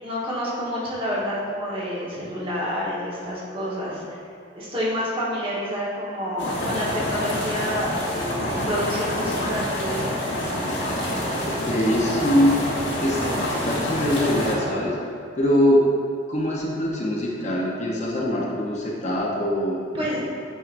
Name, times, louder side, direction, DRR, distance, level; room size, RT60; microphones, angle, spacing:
voice 1, 0.0-4.2 4.5-10.2 19.9-20.2, equal, 30° right, -6 dB, 1.2 m, -29 dB
sound 1, 6.4-14.6, left 1 dB, 65° left, 1.2 m, -27 dB
voice 2, 11.5-12.6 13.0-15.0 15.4-15.9 16.3-19.8, left 1 dB, 40° left, -4 dB, 0.7 m, -23 dB
9.0 x 4.6 x 2.5 m, 2.6 s
head